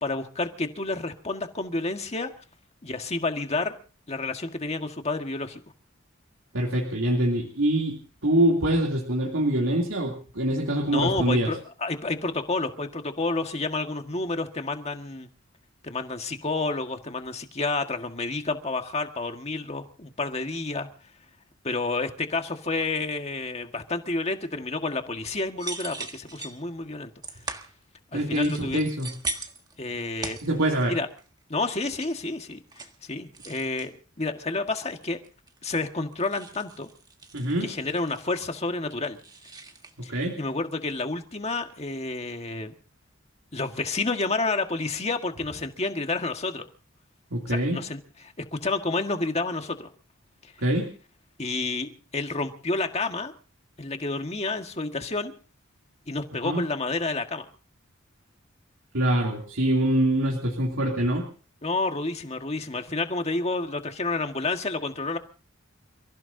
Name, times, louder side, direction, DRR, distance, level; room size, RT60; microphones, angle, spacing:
voice 1, 0.0-2.3 2.8-3.7 4.1-5.6 10.9-15.3 15.8-20.9 21.6-27.1 28.1-28.8 29.8-30.4 30.9-31.1 31.5-35.2 35.6-36.9 37.6-39.2 40.0-42.7 43.5-46.7 47.5-49.9 51.4-53.3 53.8-55.3 56.1-57.5 61.6-65.2, left 3 dB, 30° left, 5 dB, 1.7 m, -30 dB
voice 2, 6.5-11.5 28.1-29.1 30.4-30.9 37.3-37.7 40.1-40.4 47.3-47.8 50.6-50.9 56.4-56.6 58.9-61.2, right 1 dB, 85° right, 0 dB, 2.9 m, -24 dB
sound 1, 25.6-26.6 27.2-27.8 28.3-29.8 30.2-30.9 31.2-31.4 31.7-32.1 32.5-33.0 33.3-33.9 34.8-35.8 36.1-38.6 38.9-39.9, right 3 dB, 20° right, 1.6 m, -39 dB
29.0 x 15.5 x 2.8 m, 0.38 s
head